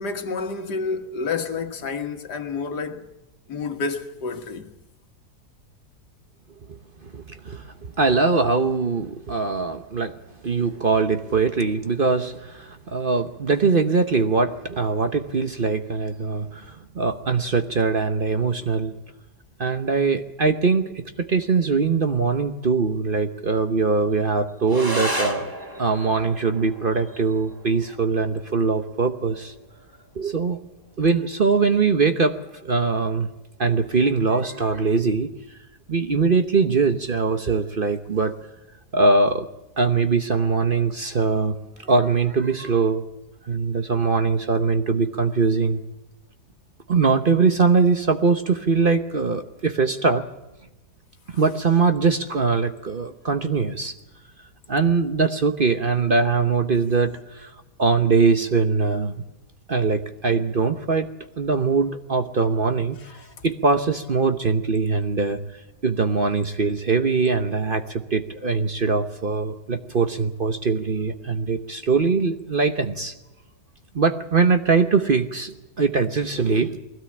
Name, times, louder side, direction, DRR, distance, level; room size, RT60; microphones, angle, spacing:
voice 1, 0.0-3.1 3.5-4.7 63.0-63.3, left 4 dB, 85° left, 2.1 m, -29 dB
voice 2, 6.7-10.1 10.4-18.9 19.6-25.4 25.8-29.5 30.2-30.6 31.0-32.4 32.6-33.3 33.6-35.3 35.9-38.4 38.9-39.5 39.8-41.6 41.8-43.0 43.5-45.8 46.9-50.2 51.3-53.9 54.7-57.5 57.8-59.1 59.7-61.1 61.4-63.0 63.4-65.4 65.8-73.1 73.9-76.8, right 4 dB, 40° right, 0.9 m, -22 dB
sound 1, 24.7-33.7, right 1 dB, 15° right, 1.6 m, -35 dB
21.0 x 16.5 x 8.6 m
omnidirectional pair, 1.7 m